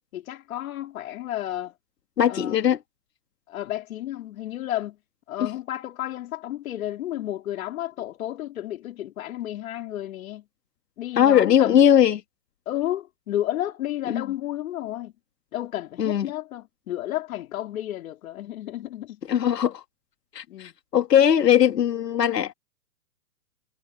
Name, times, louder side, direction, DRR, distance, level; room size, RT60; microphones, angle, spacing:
voice 1, 0.1-1.7 2.3-2.6 3.5-5.0 5.3-10.4 11.0-11.9 12.7-15.1 15.5-19.2 20.5-20.7, left 13 dB, 60° left, 2.9 m, -32 dB
voice 2, 2.2-2.8 5.4-5.5 11.2-12.2 14.1-14.2 16.0-16.3 19.3-19.8 20.3-22.5, left 9 dB, 80° left, 2.2 m, -20 dB
hypercardioid pair, 135°, 48 cm